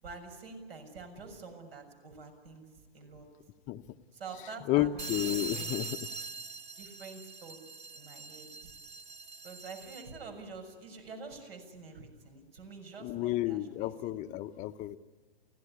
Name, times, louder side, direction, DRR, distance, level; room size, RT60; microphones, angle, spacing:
voice 1, 0.0-2.7 2.9-3.3 4.1-5.8 6.8-7.6 7.9-8.7 9.4-14.3, right 4 dB, 70° right, 6 dB, 6.7 m, -47 dB
voice 2, 4.7-5.9 13.0-15.0, left 15 dB, 25° left, 11 dB, 0.8 m, -31 dB
sound 1, 5.0-10.2, right 4 dB, 20° right, 1.5 m, -42 dB
29.5 x 16.5 x 9.9 m, 1.4 s
hypercardioid pair, 130°, 31 cm